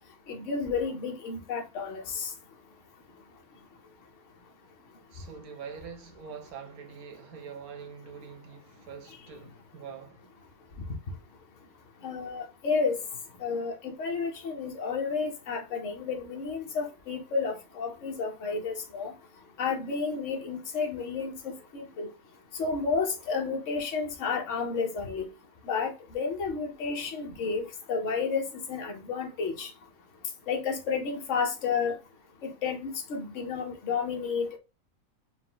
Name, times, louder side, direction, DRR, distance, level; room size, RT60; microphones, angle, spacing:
voice 1, 0.3-2.3 12.0-13.0 13.4-19.1 19.6-22.1 22.6-25.3 25.6-29.7 30.5-31.9 32.4-34.6, left 5 dB, 60° left, 1.3 m, -31 dB
voice 2, 5.1-10.3, right 6 dB, 85° right, 1.3 m, -44 dB
4.8 x 2.2 x 3.8 m
omnidirectional pair, 1.5 m